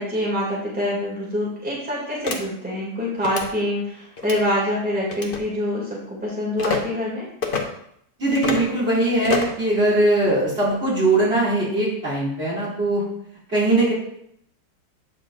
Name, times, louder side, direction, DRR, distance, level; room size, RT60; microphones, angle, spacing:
voice 1, 0.0-7.3, left 1 dB, 5° right, -6 dB, 2.2 m, -25 dB
sound 1, 2.2-2.4 3.2-3.5 4.2-4.4 5.1-5.4 6.6-6.8 7.4-7.6 8.3-8.7 9.2-9.6, left 5 dB, 45° left, 0.8 m, -26 dB
voice 2, 8.2-13.0 13.5-13.9, right 2 dB, 35° right, -7 dB, 2.9 m, -20 dB
8.8 x 6.6 x 2.5 m, 0.71 s
omnidirectional pair, 1.9 m